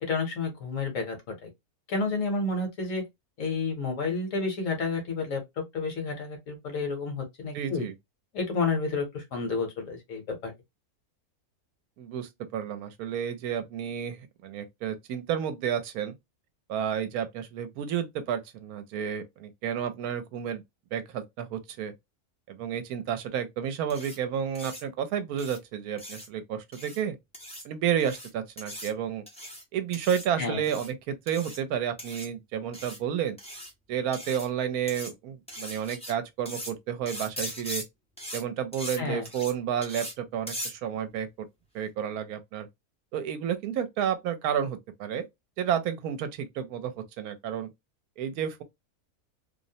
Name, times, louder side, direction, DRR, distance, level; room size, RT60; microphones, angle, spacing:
voice 1, 0.0-1.5 1.9-3.0 3.4-5.4 5.7-7.9 8.3-10.5 30.4-30.6 39.0-39.2, left 4 dB, 60° left, 1.1 m, -30 dB
voice 2, 7.5-7.9 12.0-16.1 16.7-20.6 20.9-21.9 22.5-27.2 27.6-29.2 29.7-33.4 33.9-37.8 38.3-41.3 41.7-42.7 43.1-45.2 45.6-46.9 47.2-47.7 48.2-48.6, right 9 dB, 75° right, 1.0 m, -31 dB
sound 1, 23.9-24.2 24.5-24.8 25.4-25.6 26.0-26.3 26.7-27.0 27.3-27.6 28.0-28.3 28.6-28.9 29.3-29.6 29.9-30.3 30.6-30.9 31.3-31.6 32.0-32.3 32.7-33.0 33.4-33.7 34.1-34.5 34.9-35.1 35.5-36.1 36.5-36.7 37.1-37.8 38.2-38.4 38.7-39.0 39.2-39.5 39.8-40.1 40.5-40.7, equal, 10° left, 0.3 m, -39 dB
2.7 x 2.0 x 2.6 m
omnidirectional pair, 1.6 m